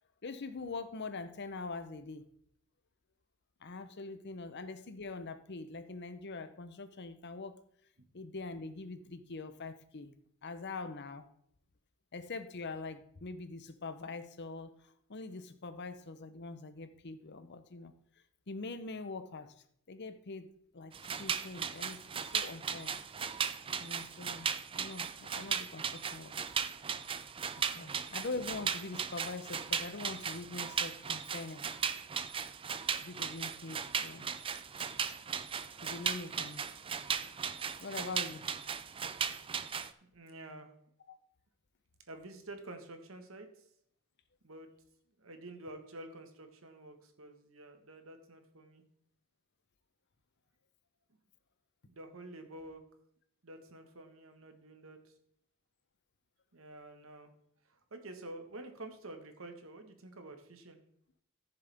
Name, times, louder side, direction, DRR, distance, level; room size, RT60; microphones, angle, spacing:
voice 1, 0.2-2.2 3.6-7.6 8.1-10.1 10.4-11.3 12.1-17.9 18.5-19.5 19.9-20.5 20.7-23.0 23.8-26.3 27.6-31.6 33.0-34.3 35.8-36.7 37.5-38.5 41.1-41.2, left 3 dB, 55° left, 11 dB, 0.8 m, -43 dB
sound 1, 20.9-39.9, right 7 dB, 25° right, 0.4 m, -37 dB
voice 2, 27.7-28.2 40.0-40.7 42.1-43.6 44.4-44.7 45.2-48.8 51.8-52.8 53.4-55.1 56.5-57.3 57.7-60.8, right 2 dB, 70° right, 6 dB, 1.5 m, -49 dB
14.5 x 6.9 x 3.5 m, 0.68 s
head